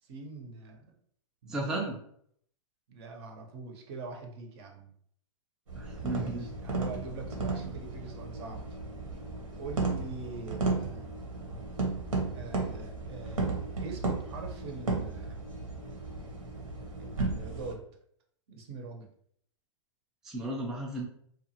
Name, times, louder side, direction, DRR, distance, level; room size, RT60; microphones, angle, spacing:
voice 1, 0.0-0.9 1.4-1.8 2.9-4.9 6.1-8.8 9.6-11.2 12.3-13.5 13.8-15.5 17.0-17.9 18.5-19.1, right 3 dB, 50° right, 2 dB, 0.8 m, -43 dB
voice 2, 1.5-2.0 5.8-6.5 20.2-21.1, right 2 dB, 5° right, -3 dB, 0.4 m, -34 dB
sound 1, 5.7-17.7, right 3 dB, 85° right, 1.0 m, -34 dB
2.8 x 2.4 x 2.8 m, 0.65 s
hypercardioid pair, 135°, 17 cm